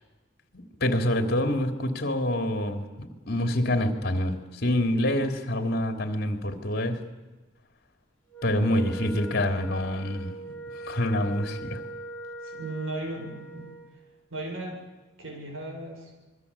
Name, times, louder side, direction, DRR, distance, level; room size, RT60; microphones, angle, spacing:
voice 1, 0.5-7.0 8.4-10.4 10.8-11.8, left 1 dB, 50° left, 6 dB, 3.3 m, -26 dB
Wind instrument woodwind instrument, 8.3-13.9, right 2 dB, 10° left, 6.7 m, -41 dB
voice 2, 12.4-13.7 14.3-14.8 15.2-16.1, right 2 dB, 75° right, 2 dB, 7.4 m, -36 dB
26.5 x 22.5 x 8.6 m, 1.2 s
head